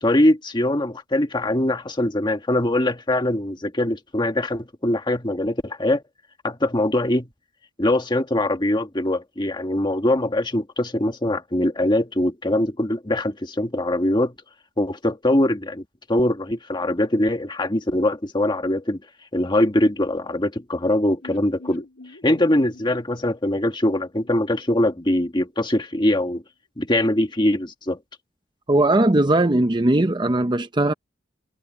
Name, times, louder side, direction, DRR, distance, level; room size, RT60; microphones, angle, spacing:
voice 1, 0.0-6.0 6.4-7.3 7.8-14.3 14.8-19.0 19.3-21.8 22.2-26.4 26.8-28.0, left 1 dB, 25° left, 1.6 m, -22 dB
sound 1, 21.2-25.1 25.4-25.5 25.7-25.8, left 2 dB, 85° left, 4.4 m, -47 dB
voice 2, 28.7-30.9, right 2 dB, 25° right, 0.7 m, -19 dB
head